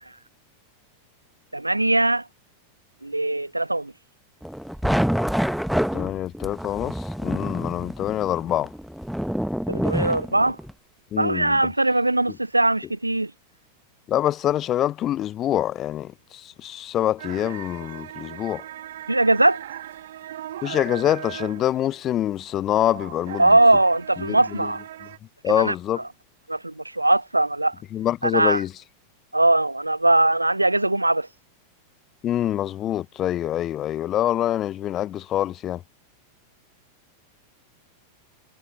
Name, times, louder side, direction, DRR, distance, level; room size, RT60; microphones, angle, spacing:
voice 1, 1.5-2.2 3.0-3.9 9.7-10.6 11.2-13.3 19.1-19.6 23.4-24.8 25.5-25.7 26.5-27.7 28.2-28.6 29.3-31.3, right 2 dB, 85° right, 0.4 m, -20 dB
sound 1, 4.4-10.7, equal, ahead, 1.2 m, -27 dB
voice 2, 5.9-8.7 11.1-11.6 14.1-18.6 20.6-23.5 24.2-24.7 25.4-26.0 27.9-28.7 32.2-35.8, left 12 dB, 30° left, 0.8 m, -25 dB
sound 2, 17.2-25.2, right 12 dB, 60° right, 2.2 m, -38 dB
figure-of-eight pair, 90°, 0 cm